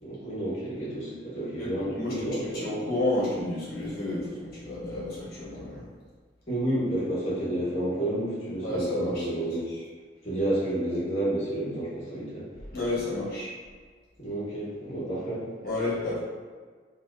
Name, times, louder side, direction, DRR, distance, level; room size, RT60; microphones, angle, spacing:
voice 1, 0.0-2.6 6.5-9.7 10.2-12.5 14.2-15.4, right 1 dB, 35° left, -9 dB, 1.0 m, -30 dB
voice 2, 1.6-5.8 8.6-9.5 12.7-13.5 15.6-16.2, left 2 dB, 55° left, -8 dB, 1.1 m, -31 dB
4.1 x 2.3 x 2.4 m, 1.5 s
head